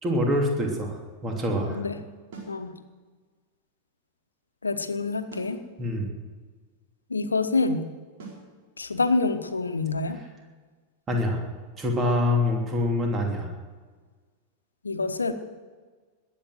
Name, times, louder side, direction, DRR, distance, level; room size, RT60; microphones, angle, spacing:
voice 1, 0.0-1.8 5.8-6.1 11.1-11.4 11.8-13.5, left 1 dB, 20° right, 1 dB, 3.0 m, -25 dB
sound 1, 2.3-2.6 5.3-5.6 8.2-8.5, right 5 dB, 55° right, 4.7 m, -42 dB
voice 2, 4.6-5.6 7.1-7.9 8.8-10.2 14.8-15.3, left 3 dB, 75° left, 9 dB, 1.1 m, -26 dB
20.5 x 8.7 x 7.8 m, 1.4 s
figure-of-eight pair, 90°, 0 cm